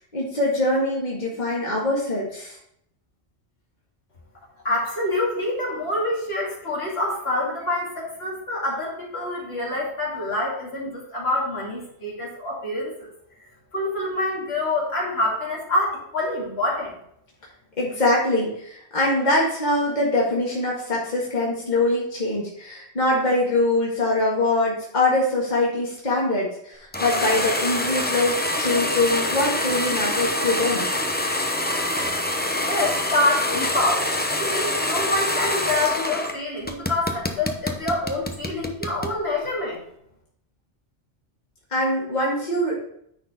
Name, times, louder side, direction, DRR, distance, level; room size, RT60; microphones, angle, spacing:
voice 1, 0.1-2.6 17.8-30.9 41.7-42.8, left 2 dB, 45° left, -5 dB, 1.9 m, -23 dB
voice 2, 4.6-13.1 13.7-17.0 32.6-39.8, left 2 dB, 70° left, -5 dB, 2.6 m, -26 dB
sound 1, 26.9-36.3 36.6-39.1, left 1 dB, 10° left, 0.6 m, -25 dB
9.5 x 4.3 x 4.2 m, 0.71 s
omnidirectional pair, 1.1 m